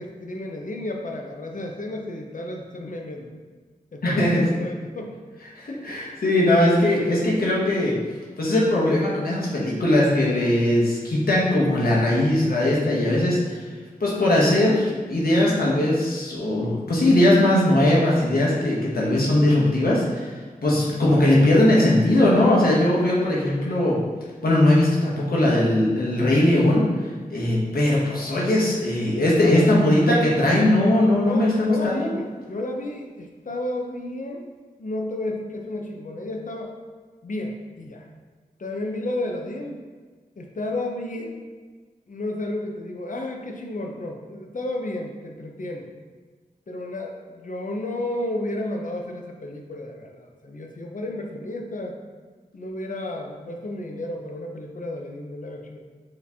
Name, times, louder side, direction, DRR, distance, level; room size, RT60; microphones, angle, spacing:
voice 1, 0.0-3.4 3.9-5.2 29.2-29.6 31.2-34.4 34.8-36.7 37.2-38.1 38.6-39.9 40.4-41.4 42.1-45.9 46.7-52.0 52.5-55.8, left 1 dB, 60° left, 1 dB, 0.7 m, -32 dB
voice 2, 4.0-4.5 5.6-8.0 8.4-13.7 14.0-24.0 24.4-27.0 27.3-32.1, left 1 dB, 80° left, -5 dB, 1.2 m, -20 dB
4.7 x 3.3 x 3.4 m, 1.4 s
cardioid pair, 50°, 15 cm